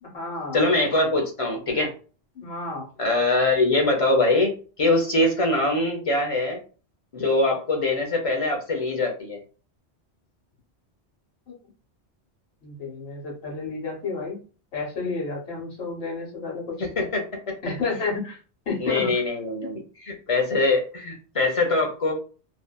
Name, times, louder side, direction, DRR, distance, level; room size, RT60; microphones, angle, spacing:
voice 1, 0.0-0.6 2.3-2.9 11.5-11.6 12.6-14.4 14.7-16.8 17.6-18.4 18.7-19.2, left 4 dB, 65° left, -1 dB, 1.1 m, -31 dB
voice 2, 0.5-1.9 3.0-6.6 7.1-9.4 16.8-17.6 18.8-22.1, left 2 dB, 40° left, 1 dB, 0.5 m, -23 dB
2.6 x 2.2 x 2.2 m, 0.37 s
omnidirectional pair, 1.1 m